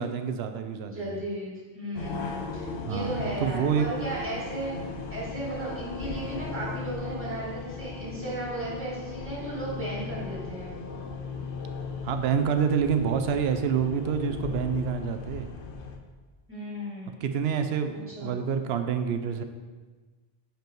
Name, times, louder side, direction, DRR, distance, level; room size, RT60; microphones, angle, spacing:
voice 1, 0.0-1.2 2.8-3.9 12.0-15.5 17.2-19.4, right 7 dB, 80° right, 8 dB, 0.8 m, -27 dB
voice 2, 0.9-10.7 16.5-17.1 18.2-18.4, right 1 dB, 10° right, -7 dB, 1.9 m, -35 dB
sound 1, 1.9-16.0, left 4 dB, 65° left, 0.8 m, -37 dB
5.2 x 4.5 x 4.5 m, 1.3 s
omnidirectional pair, 1.0 m